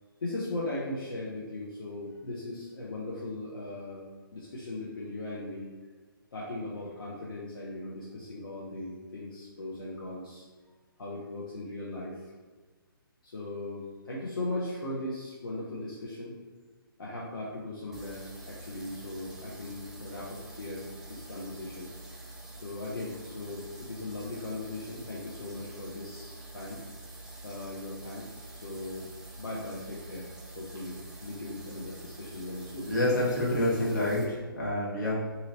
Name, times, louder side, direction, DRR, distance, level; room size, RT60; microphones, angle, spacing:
voice 1, 0.2-5.7 6.3-10.4 11.0-12.3 13.2-16.3 17.0-21.9 22.6-26.8 27.4-29.1 29.4-32.9, left 2 dB, 70° left, -6 dB, 0.8 m, -38 dB
sound 1, 17.9-34.2, right 2 dB, 5° right, 0.4 m, -46 dB
voice 2, 32.9-35.3, left 1 dB, 50° left, -5 dB, 1.3 m, -28 dB
2.8 x 2.7 x 3.9 m, 1.4 s
figure-of-eight pair, 145°, 12 cm